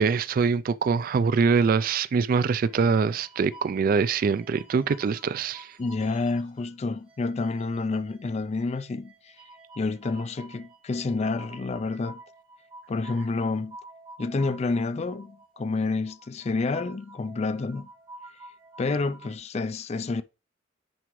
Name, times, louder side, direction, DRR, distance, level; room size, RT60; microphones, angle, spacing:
voice 1, 0.0-5.7, right 5 dB, 50° right, 0.3 m, -24 dB
sound 1, 2.4-6.7 7.0-19.4, right 2 dB, 30° right, 3.4 m, -50 dB
voice 2, 5.8-9.3 9.8-12.2 12.9-13.8 14.2-17.9 18.8-20.2, left 3 dB, 35° left, 0.4 m, -29 dB
9.6 x 4.7 x 3.1 m
head